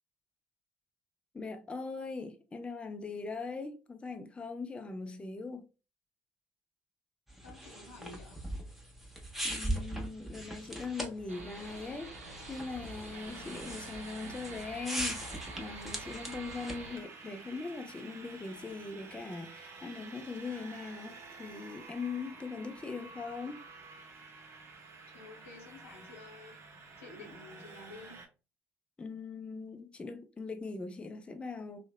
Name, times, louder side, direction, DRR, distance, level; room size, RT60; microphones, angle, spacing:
voice 1, 1.3-5.7 9.4-12.1 12.5-23.7 29.0-31.9, left 4 dB, 15° left, 0.4 m, -41 dB
sound 1, 7.3-16.9, right 1 dB, 5° right, 0.8 m, -41 dB
voice 2, 7.4-8.4 25.1-26.6 27.0-28.1, left 3 dB, 85° left, 0.8 m, -51 dB
sound 2, 11.3-17.0, right 2 dB, 85° right, 0.5 m, -48 dB
sound 3, 13.1-28.3, right 4 dB, 40° right, 0.6 m, -50 dB
2.7 x 2.0 x 2.2 m
figure-of-eight pair, 60°, 7 cm